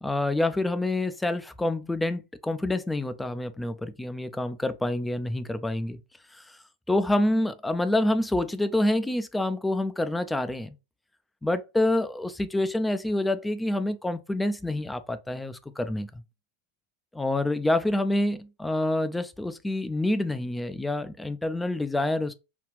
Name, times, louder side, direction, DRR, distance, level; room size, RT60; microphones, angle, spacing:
voice 1, 0.0-6.0 6.3-6.6 6.9-10.8 11.4-16.1 17.1-22.3, left 1 dB, 5° left, 0.5 m, -27 dB
5.1 x 2.4 x 3.2 m
figure-of-eight pair, 90°, 0 cm